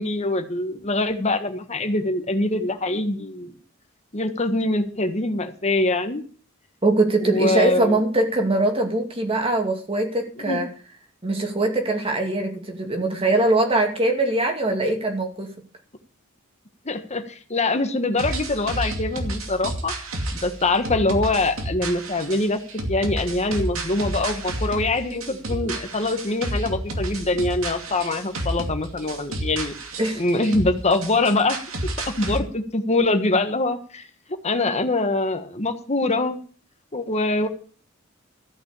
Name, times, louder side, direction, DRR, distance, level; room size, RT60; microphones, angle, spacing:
voice 1, 0.0-3.5 4.1-6.2 7.2-8.0 10.4-10.6 16.8-19.9 20.4-22.6 22.9-29.7 30.2-31.6 32.1-34.1 34.4-36.4 36.9-37.5, left 2 dB, 35° left, 8 dB, 1.4 m, -24 dB
voice 2, 6.8-10.7 11.2-15.5 30.0-30.2, right 2 dB, 30° right, 3 dB, 2.3 m, -22 dB
sound 1, 18.2-32.4, right 1 dB, 80° right, 2.5 m, -31 dB
14.0 x 6.2 x 8.3 m, 0.42 s
head